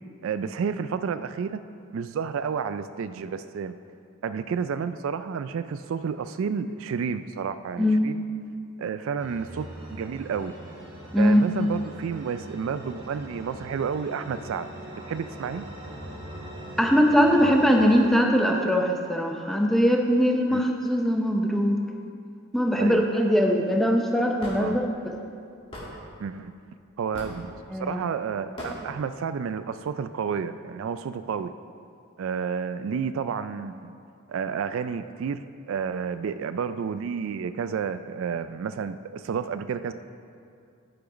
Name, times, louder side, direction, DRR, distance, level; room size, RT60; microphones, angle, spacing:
voice 1, 0.2-1.6 1.9-3.8 4.2-8.2 8.8-10.5 11.2-14.7 15.0-15.6 20.5-20.6 22.7-23.0 24.6-24.8 26.2-26.5 27.0-31.5 32.2-33.9 34.3-39.9, right 6 dB, 65° right, 11 dB, 0.3 m, -31 dB
sound 1, 9.2-18.1, right 1 dB, 15° right, 1.9 m, -41 dB
voice 2, 16.8-21.8 22.5-24.8 27.7-28.0, equal, ahead, 1 dB, 0.7 m, -21 dB
Hammer / Wood, 24.4-24.6 25.7-25.9 27.1-27.4 28.6-28.8, left 1 dB, 25° left, 1.9 m, -37 dB
11.5 x 6.1 x 5.1 m, 2.4 s
head